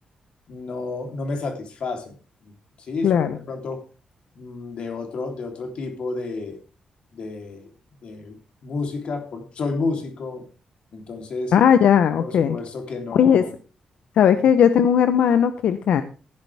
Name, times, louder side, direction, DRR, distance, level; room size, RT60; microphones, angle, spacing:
voice 1, 0.5-2.1 2.9-3.8 4.4-6.6 7.1-7.7 8.0-8.4 8.6-10.4 10.9-11.5 12.2-13.5, left 3 dB, 55° left, 4 dB, 3.4 m, -31 dB
voice 2, 3.0-3.4 11.5-12.6 13.1-13.4 14.2-16.0, left 8 dB, 90° left, 10 dB, 0.9 m, -17 dB
15.0 x 10.5 x 3.5 m, 0.34 s
wide cardioid pair, 160°, 2 cm